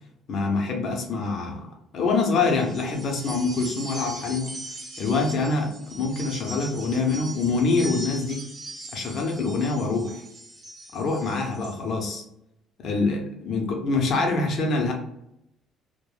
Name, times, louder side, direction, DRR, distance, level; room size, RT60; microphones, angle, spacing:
voice 1, 0.3-1.7 1.9-4.6 5.0-8.4 8.9-10.2 10.9-12.2 12.8-14.9, left 3 dB, 50° left, 1 dB, 0.7 m, -25 dB
sound 1, 2.4-11.8, right 1 dB, 30° right, 0.7 m, -40 dB
2.2 x 2.0 x 3.1 m, 0.81 s
cardioid pair, 145°, 0 cm